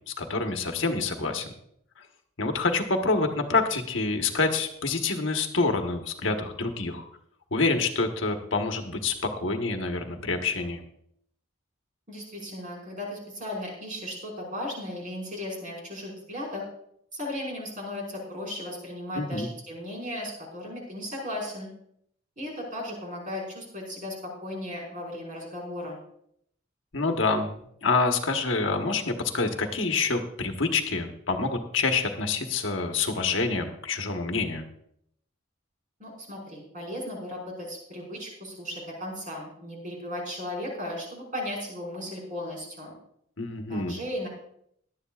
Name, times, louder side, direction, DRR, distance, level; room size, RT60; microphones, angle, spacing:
voice 1, 0.0-1.5 2.4-7.0 7.5-10.8 19.1-19.5 26.9-34.6 43.4-44.0, left 3 dB, 70° left, 4 dB, 1.3 m, -27 dB
voice 2, 12.1-16.6 17.1-21.7 22.4-26.0 36.0-42.9 43.7-44.3, left 1 dB, 40° right, -1 dB, 5.1 m, -36 dB
18.0 x 11.5 x 2.4 m, 0.70 s
head